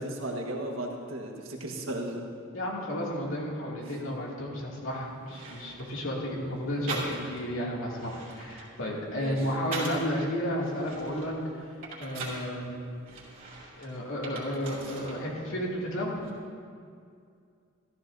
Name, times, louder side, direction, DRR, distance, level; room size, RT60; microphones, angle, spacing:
voice 1, 0.0-2.2 9.1-9.4, right 1 dB, 80° right, 1 dB, 1.5 m, -35 dB
voice 2, 2.5-11.7 12.0-12.8 13.8-16.2, equal, 80° left, -4 dB, 2.6 m, -32 dB
sound 1, 4.8-4.9 5.3-6.0 6.9-7.5 7.9-10.1 10.6-12.5 13.1-15.2 15.5-16.3, right 3 dB, 45° right, 2.8 m, -41 dB
14.5 x 14.0 x 2.7 m, 2.3 s
head